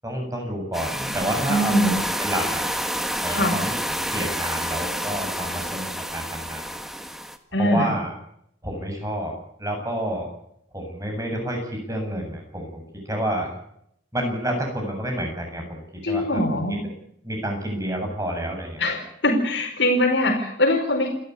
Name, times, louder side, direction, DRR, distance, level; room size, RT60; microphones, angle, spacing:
voice 1, 0.0-1.9 2.2-2.6 3.2-6.6 7.5-8.1 8.6-9.3 9.6-10.3 10.7-13.5 14.1-16.5 17.2-18.8, right 1 dB, 15° right, 2 dB, 7.8 m, -29 dB
sound 1, 0.7-7.4, equal, ahead, 1.6 m, -28 dB
voice 2, 1.5-2.0 3.3-3.6 7.5-7.9 16.0-16.8 18.8-21.1, left 1 dB, 70° left, 1 dB, 4.9 m, -22 dB
29.0 x 13.0 x 9.8 m, 0.74 s
head